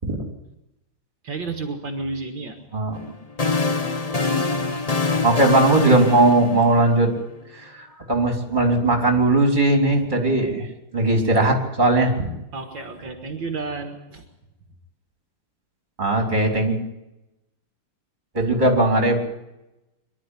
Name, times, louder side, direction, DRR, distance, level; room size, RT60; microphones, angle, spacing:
voice 1, 1.2-2.6 12.5-14.2, right 3 dB, 60° right, 4 dB, 2.6 m, -31 dB
sound 1, 3.0-7.2, left 4 dB, 25° left, 0.9 m, -24 dB
voice 2, 5.2-7.1 7.5-10.7 10.9-12.3 16.0-16.8 18.3-19.2, right 2 dB, 20° right, 2 dB, 3.9 m, -19 dB
23.5 x 12.5 x 9.9 m, 0.93 s
omnidirectional pair, 2.3 m